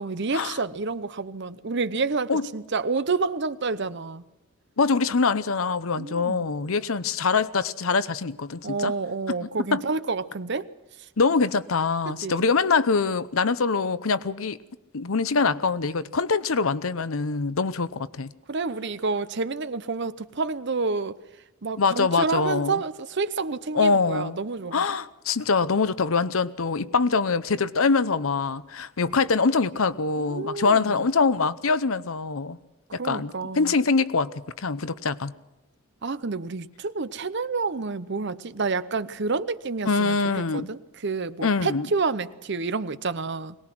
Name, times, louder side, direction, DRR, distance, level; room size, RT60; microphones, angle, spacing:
voice 1, 0.0-4.2 6.0-6.4 8.6-10.7 12.1-12.5 18.5-21.2 21.6-24.9 30.2-31.0 33.0-33.7 36.0-43.6, right 4 dB, 55° right, 0.8 m, -29 dB
voice 2, 4.8-8.9 9.3-9.8 11.2-14.6 14.9-18.3 21.8-22.8 23.7-24.4 24.7-32.6 32.9-34.3 34.6-35.3 39.9-40.7 41.4-41.9, left 4 dB, 75° left, 0.8 m, -24 dB
22.0 x 19.0 x 6.1 m
head